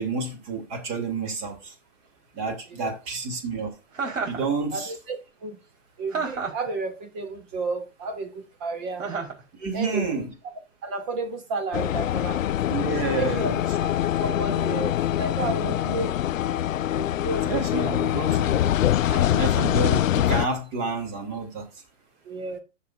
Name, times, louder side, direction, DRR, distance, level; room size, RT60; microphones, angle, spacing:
voice 1, 0.0-1.7 2.3-3.7 4.2-4.9 9.6-10.3 12.7-13.6 15.8-16.1 17.4-18.8 19.3-21.7, right 4 dB, 25° right, 2.8 m, -29 dB
Chuckle chortle, 3.9-4.5 6.1-6.7 9.0-9.4, right 5 dB, 75° right, 4.3 m, -30 dB
voice 2, 4.7-5.6 6.0-9.1 9.7-10.2 10.8-12.6 13.2-13.5 13.8-13.9 14.2-16.1 16.9-17.5 17.8-18.0 19.1-19.3 22.2-22.6, right 3 dB, 10° right, 0.4 m, -32 dB
sound 1, 11.7-20.5, left 12 dB, 85° left, 0.5 m, -24 dB
13.0 x 6.8 x 2.5 m
hypercardioid pair, 150°, 38 cm